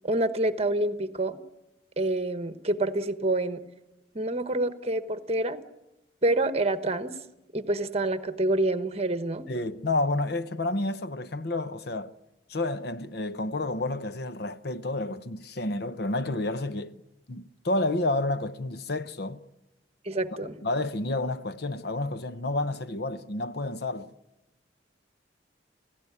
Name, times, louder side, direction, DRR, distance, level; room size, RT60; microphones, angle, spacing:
voice 1, 0.0-1.4 2.0-3.6 4.1-5.6 6.2-7.2 7.5-9.5 20.0-20.6, right 2 dB, 35° right, 1.2 m, -27 dB
voice 2, 9.5-12.1 12.5-17.0 17.3-19.4 20.6-24.1, left 2 dB, 60° left, 0.9 m, -30 dB
29.5 x 16.5 x 9.8 m
head